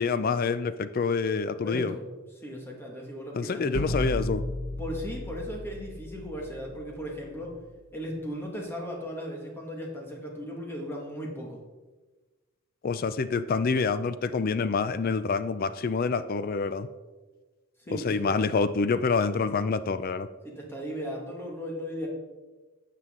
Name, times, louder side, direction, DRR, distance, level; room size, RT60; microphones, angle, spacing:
voice 1, 0.0-1.9 3.3-4.4 12.8-16.9 17.9-20.3, left 4 dB, 45° left, 13 dB, 0.4 m, -27 dB
voice 2, 1.6-2.1 2.4-3.8 4.8-7.6 7.9-11.6 17.9-18.3 20.4-22.1, equal, 10° left, -1 dB, 1.9 m, -37 dB
sound 1, 3.7-7.6, left 1 dB, 85° left, 1.3 m, -35 dB
12.5 x 7.5 x 3.7 m, 1.2 s
head